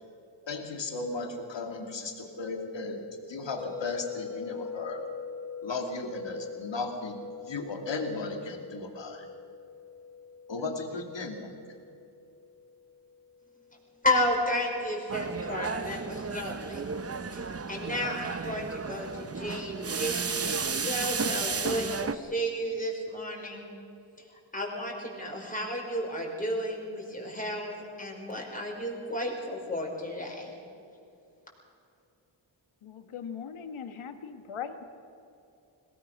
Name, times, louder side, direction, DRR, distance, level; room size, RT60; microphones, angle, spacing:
voice 1, 0.5-3.0 3.3-5.0 5.6-7.2 7.5-9.3 10.5-11.5, left 3 dB, 65° left, 3 dB, 2.7 m, -35 dB
sound 1, 3.6-13.7, left 6 dB, 5° right, 4.1 m, -43 dB
voice 2, 14.0-16.9 17.3-23.6 24.5-30.5, left 1 dB, 15° left, -1 dB, 5.2 m, -32 dB
sound 2, 15.1-22.2, right 5 dB, 30° right, 0.8 m, -33 dB
voice 3, 32.8-34.8, left 7 dB, 85° left, 8 dB, 1.5 m, -40 dB
22.0 x 18.5 x 6.4 m, 2.6 s
cardioid pair, 80°, 48 cm